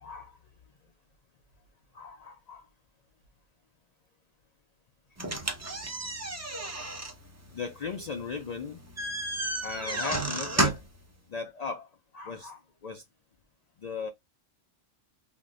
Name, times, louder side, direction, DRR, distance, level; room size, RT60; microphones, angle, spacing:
voice 1, 0.0-0.4 1.9-2.6 7.5-8.8 9.6-10.8 11.3-11.9 12.1-13.0 13.8-14.1, left 5 dB, 70° left, 0.4 m, -37 dB
sound 1, 5.2-11.0, right 2 dB, 20° right, 0.4 m, -32 dB
3.6 x 2.6 x 2.4 m
omnidirectional pair, 1.3 m